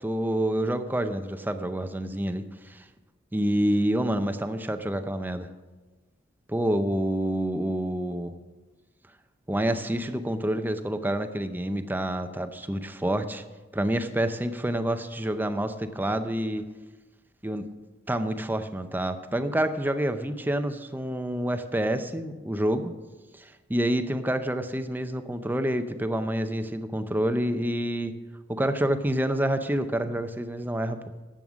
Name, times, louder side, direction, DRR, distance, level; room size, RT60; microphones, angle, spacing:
voice 1, 0.0-2.8 3.3-5.5 6.5-8.4 9.5-13.4 13.7-16.6 17.4-17.7 18.1-22.9 23.4-28.1 28.5-31.0, right 1 dB, 10° right, 9 dB, 0.5 m, -28 dB
11.0 x 7.7 x 6.1 m, 1.2 s
head